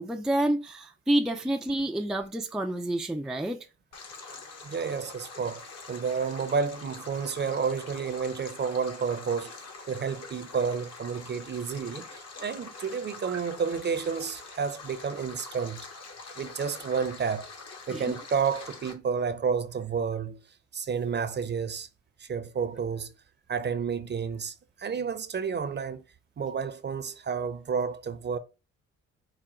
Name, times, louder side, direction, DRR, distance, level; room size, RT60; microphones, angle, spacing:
voice 1, 0.0-3.7 13.2-13.4 17.9-18.0, right 1 dB, ahead, 0.4 m, -29 dB
Stream, 3.9-18.9, left 4 dB, 55° left, 1.3 m, -45 dB
voice 2, 4.6-9.6 9.9-15.8 16.4-17.5 17.9-20.4 20.7-21.9 22.2-23.1 23.5-26.0 26.4-28.4, right 6 dB, 35° right, 0.7 m, -30 dB
5.0 x 2.2 x 4.3 m
cardioid pair, 90°, 30 cm